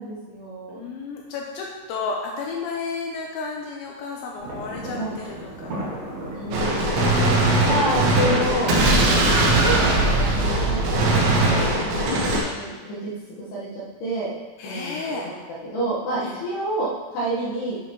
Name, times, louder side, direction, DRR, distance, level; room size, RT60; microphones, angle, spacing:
voice 1, 0.0-0.8 4.9-5.1 6.3-7.3 7.6-8.7 9.6-12.3 12.5-13.1 13.4-14.3 14.6-15.3 15.6-17.8, right 1 dB, 65° left, -7 dB, 2.8 m, -29 dB
voice 2, 0.7-6.2 7.8-7.9 9.1-9.3 14.6-15.3 16.2-16.4, left 4 dB, 85° left, -1 dB, 2.7 m, -33 dB
sound 1, 4.4-10.0, right 1 dB, 55° right, 4.0 m, -35 dB
Gunshot gunfire, 6.5-12.4, right 2 dB, 70° right, 3.5 m, -20 dB
8.8 x 7.8 x 3.0 m, 1.3 s
omnidirectional pair, 5.9 m